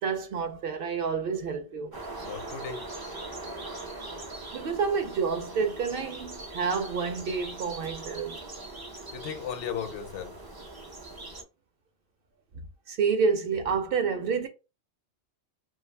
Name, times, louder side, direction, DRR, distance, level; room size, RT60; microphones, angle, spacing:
voice 1, 0.0-2.0 4.5-8.4 12.9-14.5, right 5 dB, 60° right, 0.7 m, -29 dB
sound 1, 1.9-11.4, right 2 dB, 40° right, 0.3 m, -41 dB
voice 2, 2.2-2.8 9.1-10.3, left 8 dB, 85° left, 0.9 m, -36 dB
2.4 x 2.3 x 3.2 m
omnidirectional pair, 1.2 m